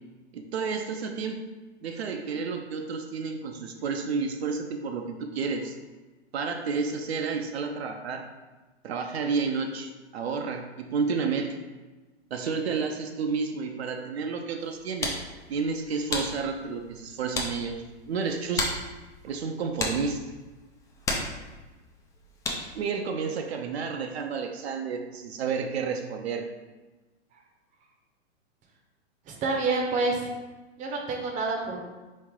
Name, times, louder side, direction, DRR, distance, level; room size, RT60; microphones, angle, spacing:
voice 1, 0.3-1.4 1.8-5.8 6.3-8.3 8.8-11.6 12.3-15.2 15.5-18.7 19.2-20.2 22.7-26.5, right 5 dB, 70° right, 4 dB, 0.6 m, -31 dB
sound 1, 14.6-22.9, left 2 dB, 10° left, 0.4 m, -35 dB
voice 2, 29.3-30.3 30.8-31.8, right 3 dB, 25° right, 1 dB, 0.7 m, -28 dB
4.4 x 3.2 x 3.7 m, 1.2 s
hypercardioid pair, 110°, 33 cm